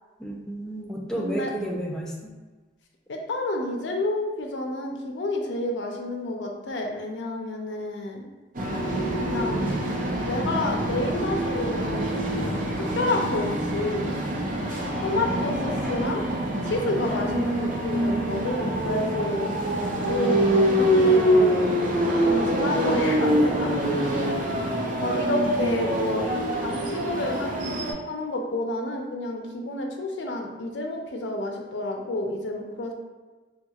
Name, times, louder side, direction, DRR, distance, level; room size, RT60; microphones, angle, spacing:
voice 1, 0.2-2.3, right 1 dB, 5° left, -3 dB, 0.3 m, -31 dB
voice 2, 1.2-1.5 3.1-8.2 9.2-9.7 10.3-14.2 15.0-16.2 16.6-19.5 20.0-21.7 22.2-23.7 25.0-26.3 26.6-27.7 28.1-32.9, left 1 dB, 75° left, 2 dB, 0.5 m, -29 dB
sound 1, 8.6-27.9, right 1 dB, 45° right, 0.5 m, -25 dB
3.4 x 2.8 x 2.3 m, 1.3 s
head